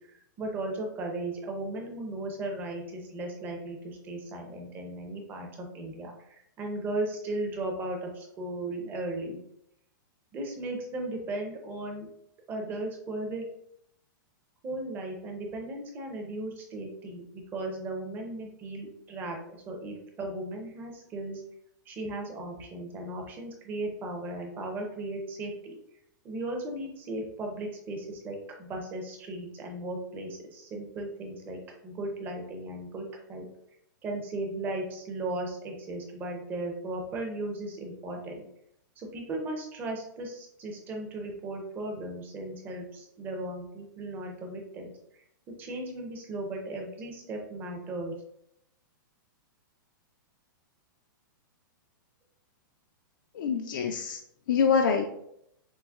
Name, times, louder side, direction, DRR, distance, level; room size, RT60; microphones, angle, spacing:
voice 1, 0.1-9.4 10.3-12.1 12.5-13.5 14.6-21.4 21.9-25.7 26.2-33.4 34.0-38.5 39.0-45.2 45.6-48.1, right 2 dB, 15° right, 1 dB, 0.6 m, -36 dB
voice 2, 53.3-54.2 54.5-55.0, left 6 dB, 65° left, 3 dB, 0.4 m, -25 dB
6.1 x 2.1 x 2.3 m, 0.76 s
hypercardioid pair, 160°, 11 cm